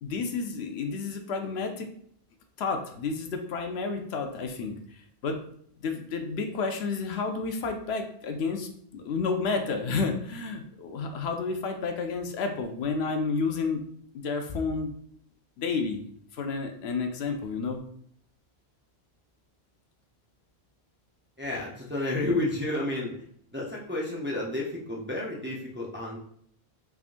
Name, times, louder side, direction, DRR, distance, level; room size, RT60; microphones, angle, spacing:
voice 1, 0.0-1.9 2.6-5.4 5.8-13.8 14.1-14.9 15.6-16.0 16.3-17.8, left 4 dB, 75° left, 5 dB, 0.8 m, -31 dB
voice 2, 21.4-23.2 23.5-26.2, left 2 dB, 15° right, -4 dB, 0.5 m, -31 dB
3.6 x 3.5 x 2.5 m, 0.65 s
omnidirectional pair, 1.1 m